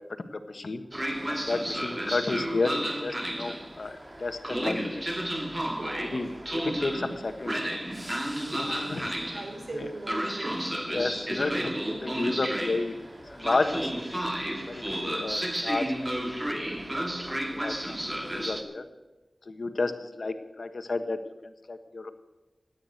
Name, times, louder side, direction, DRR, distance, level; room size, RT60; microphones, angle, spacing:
voice 1, 0.3-0.8 1.3-5.0 6.1-6.3 6.8-7.8 8.5-9.1 10.9-13.0 13.3-14.1 14.7-16.1 16.6-16.8 17.3-18.0 18.3-18.9 19.5-21.2 21.4-22.1, left 3 dB, 75° left, 8 dB, 1.3 m, -32 dB
Train, 0.9-18.6, right 1 dB, 25° right, 2.0 m, -32 dB
voice 2, 5.6-6.4 8.5-10.9 14.8-15.4, right 2 dB, 75° right, 3 dB, 3.8 m, -42 dB
14.5 x 9.1 x 7.9 m, 1.1 s
wide cardioid pair, 60°, 0 cm